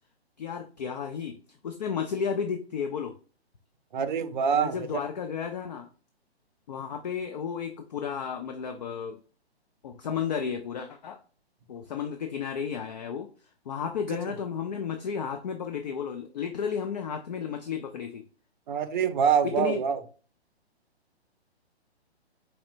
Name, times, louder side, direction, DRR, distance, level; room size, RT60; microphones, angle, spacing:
voice 1, 0.4-3.1 4.5-5.9 6.7-9.2 9.8-11.2 11.7-13.3 13.7-18.2 19.4-19.8, left 7 dB, 40° left, 6 dB, 0.5 m, -33 dB
voice 2, 3.9-5.0 18.7-20.0, right 7 dB, 45° right, 10 dB, 0.6 m, -25 dB
4.4 x 4.2 x 2.5 m, 0.38 s
figure-of-eight pair, 130°, 33 cm